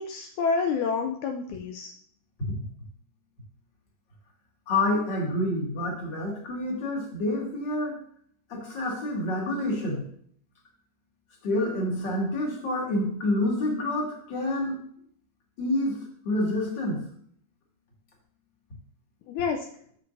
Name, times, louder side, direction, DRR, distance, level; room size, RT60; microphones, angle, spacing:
voice 1, 0.0-1.9 19.3-19.7, left 5 dB, 80° left, 3 dB, 2.0 m, -28 dB
voice 2, 4.7-8.0 8.5-10.0 11.4-14.8 15.6-16.0 16.2-17.0, left 1 dB, 35° left, -2 dB, 2.5 m, -28 dB
13.5 x 6.9 x 2.7 m, 0.63 s
omnidirectional pair, 3.8 m